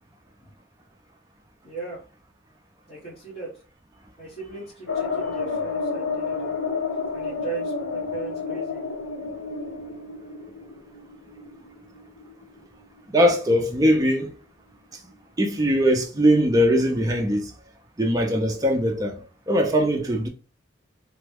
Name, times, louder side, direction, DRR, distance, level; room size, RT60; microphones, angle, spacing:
voice 1, 1.6-2.1 2.9-3.6 4.2-6.5 7.1-8.8, right 5 dB, 35° left, 1.3 m, -38 dB
sound 1, 4.9-13.4 13.7-13.8 14.1-14.2, left 4 dB, 85° left, 0.7 m, -30 dB
voice 2, 13.1-14.3 15.4-17.5 18.0-20.3, equal, 20° right, 0.5 m, -21 dB
3.0 x 2.2 x 3.4 m
head